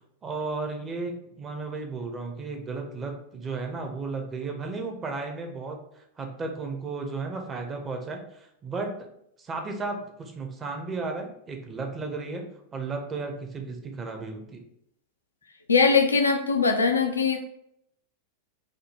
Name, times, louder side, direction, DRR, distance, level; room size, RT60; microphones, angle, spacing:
voice 1, 0.2-8.9 9.4-12.5 12.7-14.6, right 3 dB, 20° right, 3 dB, 0.8 m, -34 dB
voice 2, 15.7-17.4, left 4 dB, 75° left, 5 dB, 0.5 m, -21 dB
5.0 x 2.2 x 4.3 m, 0.76 s
figure-of-eight pair, 90°, 0 cm